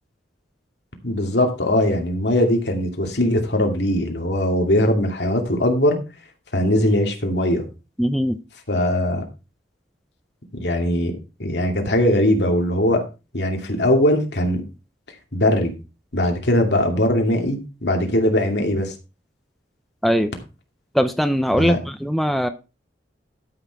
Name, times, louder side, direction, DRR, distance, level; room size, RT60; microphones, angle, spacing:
voice 1, 1.0-6.0 6.5-7.6 8.7-9.2 10.5-11.1 11.4-13.0 13.3-14.6 15.3-15.7 16.1-18.9 21.6-21.8, left 1 dB, 65° left, 3 dB, 2.5 m, -20 dB
voice 2, 8.0-8.4 20.0-20.3 20.9-22.5, equal, ahead, 8 dB, 0.6 m, -20 dB
12.5 x 6.4 x 4.7 m, 0.30 s
head